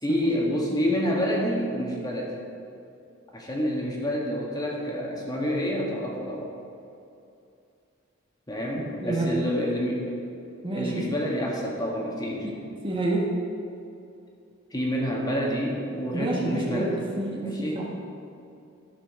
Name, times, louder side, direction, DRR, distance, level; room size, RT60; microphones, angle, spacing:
voice 1, 0.0-2.3 3.3-6.5 8.5-10.2 10.7-12.5 14.7-16.9 17.4-17.8, equal, 20° left, -2 dB, 1.5 m, -28 dB
voice 2, 9.0-9.6 10.6-11.2 12.4-12.5 12.8-13.3 16.1-17.9, right 2 dB, 25° right, -2 dB, 1.1 m, -28 dB
12.5 x 6.2 x 6.2 m, 2.6 s
head